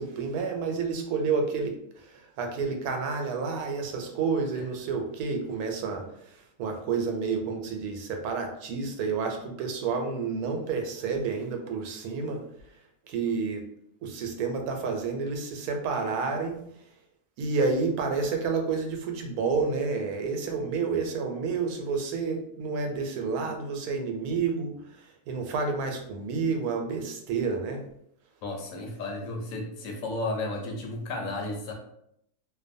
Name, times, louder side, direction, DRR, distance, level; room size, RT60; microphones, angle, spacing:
voice 1, 0.0-12.4 13.1-13.6 14.0-16.6 17.4-27.8, right 4 dB, 90° right, 3 dB, 1.1 m, -30 dB
voice 2, 28.4-31.7, left 2 dB, 70° left, 2 dB, 1.0 m, -33 dB
2.6 x 2.2 x 2.5 m, 0.73 s
omnidirectional pair, 1.5 m